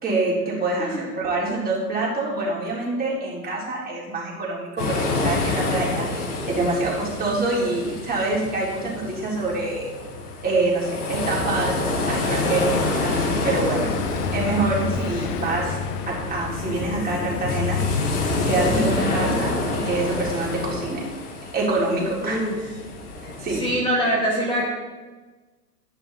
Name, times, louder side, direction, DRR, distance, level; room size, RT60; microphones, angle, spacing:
voice 1, 0.0-9.9 10.4-13.9 14.3-15.8 16.1-17.8 18.5-21.0 21.5-22.4 23.2-23.8, right 2 dB, 20° right, -3 dB, 3.9 m, -26 dB
voice 2, 0.8-1.1 15.2-15.3 18.7-19.5 22.2-22.6 23.5-24.6, equal, 10° left, -5 dB, 2.1 m, -25 dB
sound 1, 4.8-23.6, left 3 dB, 65° left, 3.7 m, -28 dB
Car passing by, 9.6-20.4, left 7 dB, 35° left, 0.9 m, -34 dB
11.5 x 10.5 x 4.2 m, 1.3 s
figure-of-eight pair, 105°, 47 cm